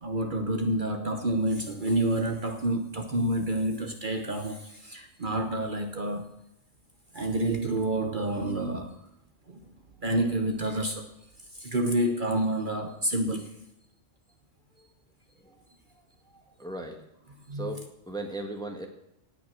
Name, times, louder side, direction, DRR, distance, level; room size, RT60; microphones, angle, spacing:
voice 1, 0.0-6.3 7.1-9.0 9.5-9.6 10.0-11.1 11.5-13.5 17.5-17.7, right 1 dB, 45° right, 1.2 m, -28 dB
voice 2, 16.2-17.1 17.5-18.9, right 2 dB, 5° left, 1.6 m, -38 dB
18.0 x 6.0 x 7.5 m
omnidirectional pair, 1.2 m